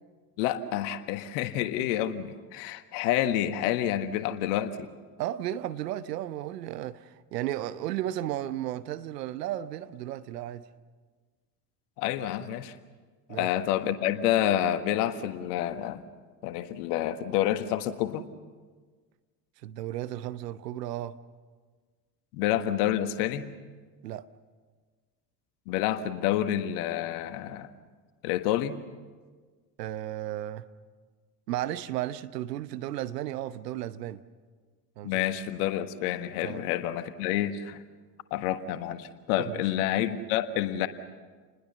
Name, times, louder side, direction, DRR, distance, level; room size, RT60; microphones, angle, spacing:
voice 1, 0.4-4.9 12.0-12.7 13.3-16.0 16.4-18.2 22.3-23.5 25.7-27.7 28.2-28.8 35.0-37.8 38.3-40.9, left 11 dB, 65° left, 1.6 m, -28 dB
voice 2, 5.2-10.7 13.3-13.5 19.6-21.2 24.0-24.3 29.8-30.7 31.5-34.2 35.0-35.2 36.4-36.6 39.4-39.6, right 13 dB, 75° right, 1.1 m, -34 dB
29.0 x 20.5 x 6.9 m
hypercardioid pair, 65°, 49 cm